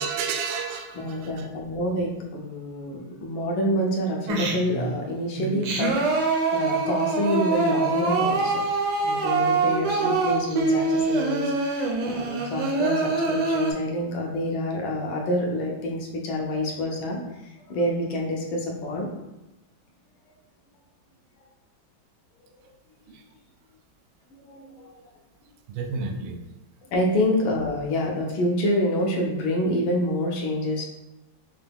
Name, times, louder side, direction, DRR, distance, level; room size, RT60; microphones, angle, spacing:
voice 1, 0.0-1.5 23.1-23.2 24.6-25.0 25.7-26.4, right 5 dB, 80° right, 4 dB, 1.3 m, -32 dB
voice 2, 0.9-8.6 9.0-19.1 24.3-24.9 26.9-30.8, left 1 dB, 80° left, -1 dB, 1.6 m, -27 dB
Singing, 4.3-4.9 5.4-13.7, right 3 dB, 65° right, 1.1 m, -24 dB
5.7 x 2.2 x 3.4 m, 0.97 s
omnidirectional pair, 2.2 m